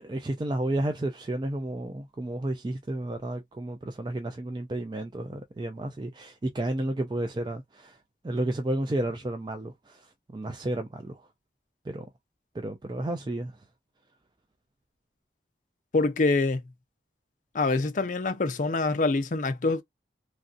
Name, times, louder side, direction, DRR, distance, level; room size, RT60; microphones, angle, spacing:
voice 1, 0.0-8.0 8.2-11.2 11.9-12.1 12.5-13.5, right 1 dB, 25° right, 0.3 m, -32 dB
voice 2, 15.9-16.6 17.5-19.8, left 3 dB, 45° left, 0.5 m, -25 dB
3.1 x 2.6 x 2.4 m
head